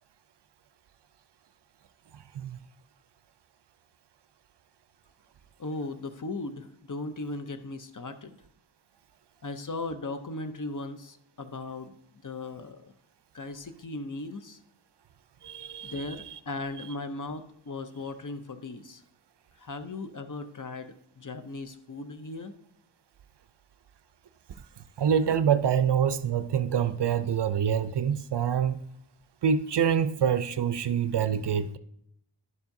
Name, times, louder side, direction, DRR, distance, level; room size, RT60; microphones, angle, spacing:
voice 1, 5.6-8.4 9.4-11.9 12.2-12.9 13.3-14.6 15.8-19.0 19.6-22.5, left 2 dB, 40° left, 0.6 m, -37 dB
voice 2, 15.4-16.0 25.0-28.8 29.4-31.8, right 8 dB, 60° right, 0.5 m, -26 dB
11.0 x 7.1 x 2.6 m
wide cardioid pair, 60°, 49 cm